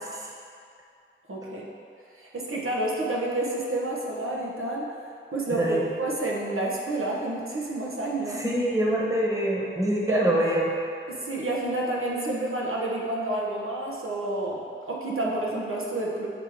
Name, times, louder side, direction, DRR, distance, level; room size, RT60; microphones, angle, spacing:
voice 1, 1.3-1.7 2.1-4.9 5.3-8.4 10.1-10.3 11.1-16.3, right 2 dB, 75° right, -4 dB, 0.9 m, -29 dB
voice 2, 5.5-5.8 8.3-10.7, right 1 dB, 15° right, -4 dB, 1.2 m, -25 dB
7.8 x 3.4 x 4.8 m, 2.3 s
wide cardioid pair, 50°, 21 cm